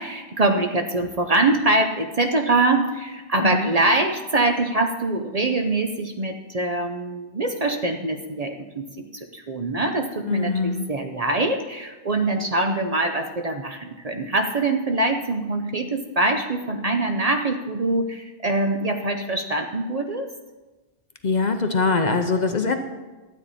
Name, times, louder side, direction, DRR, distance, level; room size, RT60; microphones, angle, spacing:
voice 1, 0.0-8.9 9.1-20.3, right 2 dB, 40° right, 4 dB, 0.7 m, -24 dB
voice 2, 10.2-10.9 21.2-22.8, left 4 dB, 45° left, 6 dB, 0.7 m, -22 dB
12.5 x 9.1 x 4.2 m, 1.2 s
omnidirectional pair, 1.1 m